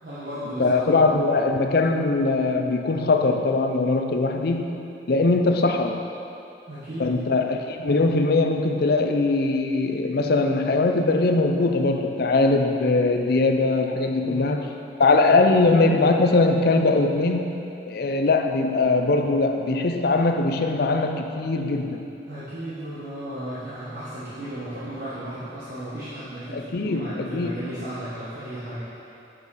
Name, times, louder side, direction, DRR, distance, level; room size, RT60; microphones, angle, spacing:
voice 1, 0.0-0.8 6.7-7.4 14.2-14.8 22.2-28.8, right 1 dB, 55° right, -12 dB, 1.4 m, -35 dB
voice 2, 0.6-4.7 5.1-6.0 7.0-14.7 15.0-22.0 26.5-27.6, left 3 dB, 55° left, 5 dB, 0.5 m, -21 dB
7.6 x 6.3 x 4.1 m, 2.7 s
head